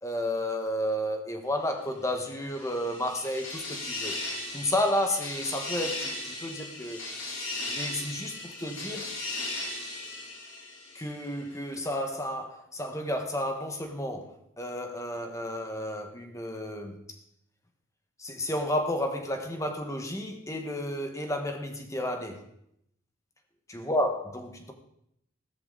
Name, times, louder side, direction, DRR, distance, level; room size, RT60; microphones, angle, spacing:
voice 1, 0.0-4.1 4.5-9.1 10.9-17.0 18.2-22.4 23.7-24.7, left 1 dB, 15° left, 1.6 m, -32 dB
sound 1, 2.2-11.3, left 2 dB, 85° left, 4.4 m, -37 dB
15.0 x 13.0 x 4.1 m
head